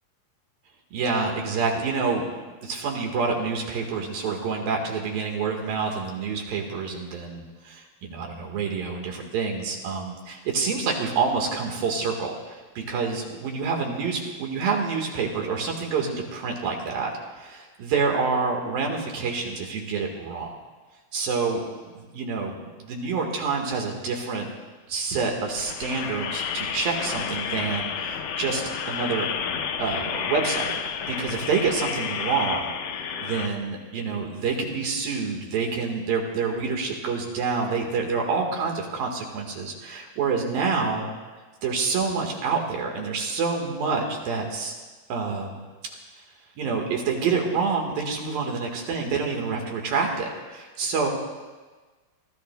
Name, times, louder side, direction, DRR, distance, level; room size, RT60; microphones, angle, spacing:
voice 1, 0.9-2.3 2.6-17.1 17.4-20.6 21.1-21.6 21.9-24.5 24.9-28.6 28.9-29.3 29.8-30.7 31.1-32.7 33.2-41.1 41.6-44.7 45.1-45.6 46.6-51.1, right 5 dB, 75° right, 1 dB, 3.4 m, -27 dB
sound 1, 25.5-33.5, left 7 dB, 85° left, 1.5 m, -30 dB
28.5 x 13.0 x 2.3 m, 1.3 s
omnidirectional pair, 4.2 m